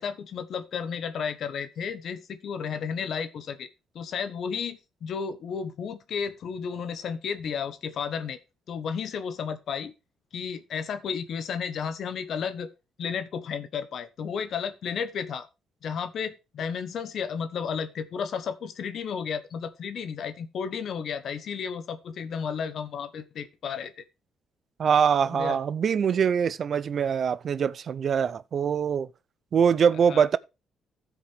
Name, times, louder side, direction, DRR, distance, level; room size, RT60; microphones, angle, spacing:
voice 1, 0.0-3.7 3.9-8.4 8.7-9.9 10.3-12.7 13.0-15.5 15.8-24.0 25.2-25.6 30.1-30.3, left 6 dB, 65° left, 1.1 m, -33 dB
voice 2, 24.8-29.1 29.5-30.4, right 7 dB, 55° right, 0.5 m, -23 dB
15.0 x 5.1 x 3.5 m
cardioid pair, 90°, 0 cm